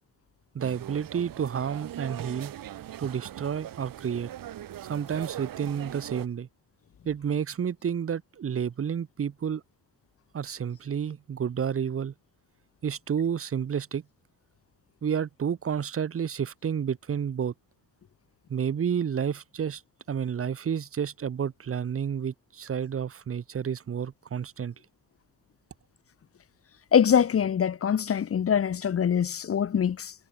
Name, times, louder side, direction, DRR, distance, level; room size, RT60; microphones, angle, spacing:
voice 1, 0.5-2.5 3.0-4.3 4.8-6.5 7.0-9.6 10.3-12.1 12.8-14.0 15.0-17.5 18.5-19.8 20.1-24.7, right 8 dB, 40° right, 1.5 m, -30 dB
sound 1, 0.6-6.3, right 12 dB, 70° right, 4.0 m, -40 dB
voice 2, 26.9-30.1, left 8 dB, 40° left, 1.2 m, -23 dB
cardioid pair, 125°, 35 cm